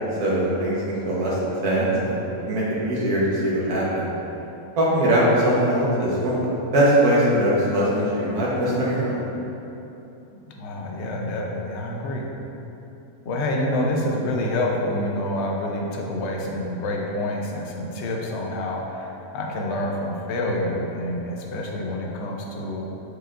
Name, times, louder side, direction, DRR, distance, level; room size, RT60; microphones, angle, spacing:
voice 1, 0.2-4.1 4.8-6.4 6.7-9.2, right 1 dB, 85° right, -7 dB, 1.7 m, -21 dB
voice 2, 10.5-12.3 13.2-22.8, left 1 dB, 60° left, -1 dB, 0.9 m, -27 dB
7.8 x 4.9 x 2.5 m, 3.0 s
omnidirectional pair, 1.5 m